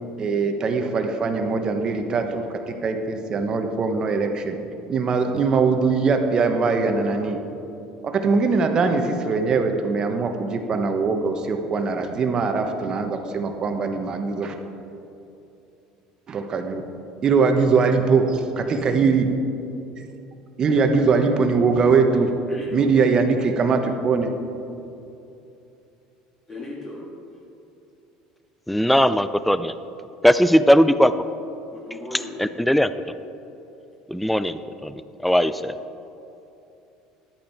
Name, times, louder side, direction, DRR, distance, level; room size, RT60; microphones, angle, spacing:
voice 1, 0.2-4.6 4.9-7.4 8.0-14.6 16.3-16.8 17.2-19.3 20.6-22.3 22.7-24.3, right 4 dB, 40° right, 6 dB, 1.1 m, -21 dB
voice 2, 22.1-22.7 26.5-27.0 31.7-32.4, left 2 dB, 25° left, -5 dB, 2.2 m, -37 dB
voice 3, 28.7-29.7 30.2-31.1 32.1-32.9 34.1-35.7, equal, ahead, 13 dB, 0.3 m, -19 dB
11.5 x 8.7 x 4.5 m, 2.8 s
supercardioid pair, 100°, 2 cm